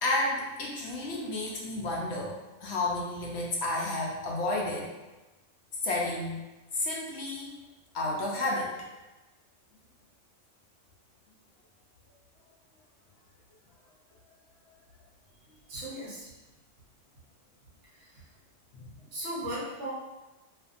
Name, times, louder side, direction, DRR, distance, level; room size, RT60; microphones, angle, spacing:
voice 1, 0.0-4.9 5.8-6.4 6.7-7.5 7.9-8.7 18.7-18.8, left 2 dB, 70° left, -3 dB, 0.8 m, -31 dB
voice 2, 15.7-16.3 17.9-18.3 19.1-19.9, right 1 dB, 65° right, -6 dB, 1.1 m, -37 dB
2.5 x 2.5 x 2.4 m, 1.1 s
omnidirectional pair, 1.3 m